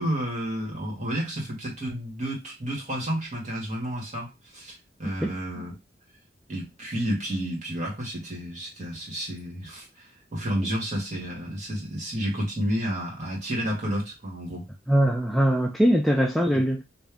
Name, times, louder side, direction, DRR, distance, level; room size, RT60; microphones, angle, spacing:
voice 1, 0.0-5.7 6.5-14.7 16.5-16.6, equal, 40° right, 1.9 m, -31 dB
voice 2, 14.9-16.8, equal, ahead, 0.4 m, -21 dB
3.4 x 2.6 x 3.4 m
head